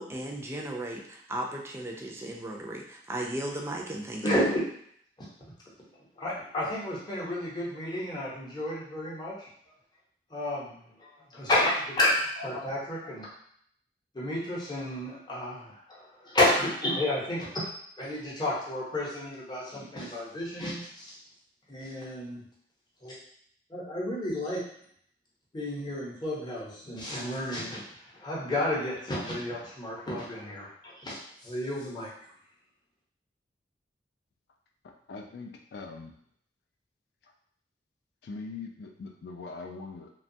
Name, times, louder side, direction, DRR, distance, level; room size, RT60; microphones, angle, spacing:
voice 1, 0.0-4.4, right 1 dB, 15° right, 0 dB, 0.3 m, -36 dB
voice 2, 4.2-4.6 5.2-5.3 6.2-9.5 10.3-10.8 11.3-13.3 14.1-17.5 18.0-21.1 21.7-22.4 23.0-23.1 23.7-24.6 25.5-27.8 28.2-31.1 31.4-32.1, left 1 dB, 25° left, -6 dB, 0.7 m, -31 dB
voice 3, 34.8-36.1 37.2-37.3 38.2-40.1, left 4 dB, 65° left, 3 dB, 0.3 m, -42 dB
2.9 x 2.2 x 2.6 m, 0.66 s
head